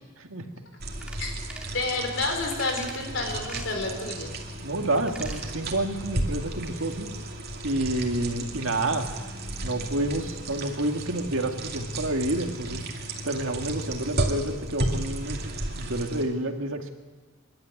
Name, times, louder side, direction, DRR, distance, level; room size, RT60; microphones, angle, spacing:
sound 1, 0.8-16.2, right 1 dB, 45° right, 2.6 m, -34 dB
sound 2, 1.0-1.2 1.5-1.8 2.5-3.0 3.4-3.7 4.9-5.4 5.8-5.9, right 1 dB, 5° right, 2.1 m, -42 dB
voice 1, 1.7-4.3, left 2 dB, 60° left, 3 dB, 4.6 m, -29 dB
voice 2, 4.6-7.1 7.6-9.1 9.6-12.8 13.2-16.9, right 1 dB, 70° right, 4 dB, 2.1 m, -29 dB
26.5 x 12.0 x 9.7 m, 1.4 s
head